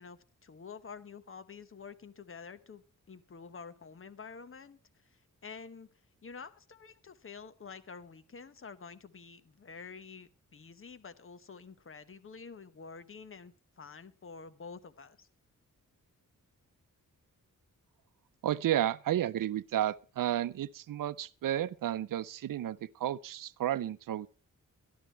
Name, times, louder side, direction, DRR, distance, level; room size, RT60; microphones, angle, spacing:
voice 1, 0.0-5.9 6.2-15.3, left 5 dB, 40° left, 1.0 m, -49 dB
voice 2, 18.4-24.3, right 12 dB, 85° right, 0.6 m, -32 dB
12.5 x 12.0 x 4.5 m
wide cardioid pair, 115°, 32 cm